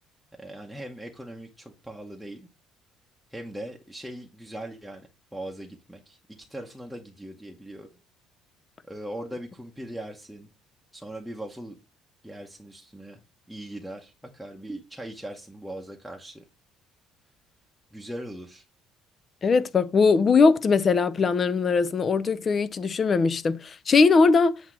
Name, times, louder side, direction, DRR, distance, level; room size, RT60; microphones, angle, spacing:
voice 1, 0.4-2.5 3.3-6.2 6.5-7.9 8.9-10.5 10.9-11.8 12.2-13.2 13.5-16.4 17.9-18.6, right 1 dB, ahead, 0.9 m, -40 dB
voice 2, 19.4-24.6, left 4 dB, 35° left, 0.6 m, -20 dB
7.9 x 2.9 x 6.1 m
cardioid pair, 110°, 0 cm